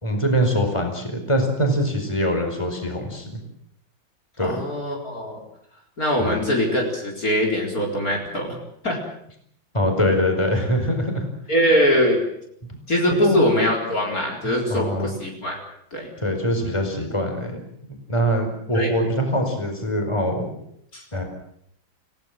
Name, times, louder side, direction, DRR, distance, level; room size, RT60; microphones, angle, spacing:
voice 1, 0.0-3.4 4.4-4.6 6.2-6.5 9.7-11.3 13.1-13.4 14.7-15.1 16.2-17.6 18.1-20.5 21.1-21.2, equal, 15° left, 4 dB, 4.9 m, -23 dB
voice 2, 4.4-5.4 6.0-8.6 8.8-9.0 11.5-12.2 12.9-15.6 15.9-16.1 18.7-18.9 20.9-21.0, equal, 45° left, 0 dB, 4.6 m, -22 dB
29.5 x 17.0 x 7.7 m, 0.71 s
omnidirectional pair, 2.2 m